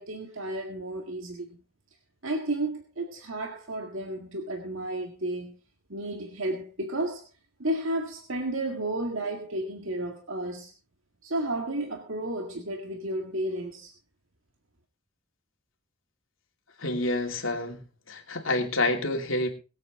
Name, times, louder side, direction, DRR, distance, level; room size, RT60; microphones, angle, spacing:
voice 1, 0.0-1.5 2.2-5.6 5.9-7.3 7.6-10.7 11.2-13.9, right 1 dB, 75° right, 3 dB, 1.9 m, -32 dB
voice 2, 16.8-17.8 18.1-19.5, left 2 dB, 70° left, 3 dB, 2.9 m, -28 dB
22.0 x 8.7 x 3.8 m, 0.33 s
head